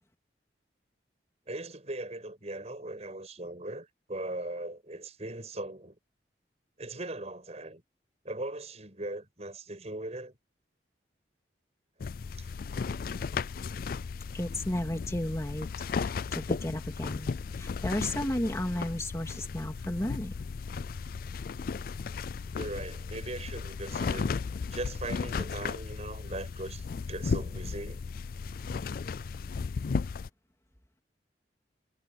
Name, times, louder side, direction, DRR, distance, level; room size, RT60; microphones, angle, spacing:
voice 1, 1.5-6.0 6.8-7.8 8.2-10.4 12.4-12.5 12.7-12.9 22.5-24.3 24.7-28.0, right 2 dB, 40° right, 6.4 m, -39 dB
sound 1, 12.0-30.3, left 5 dB, 55° left, 0.4 m, -35 dB
voice 2, 14.3-20.3, left 1 dB, 15° left, 2.7 m, -34 dB
head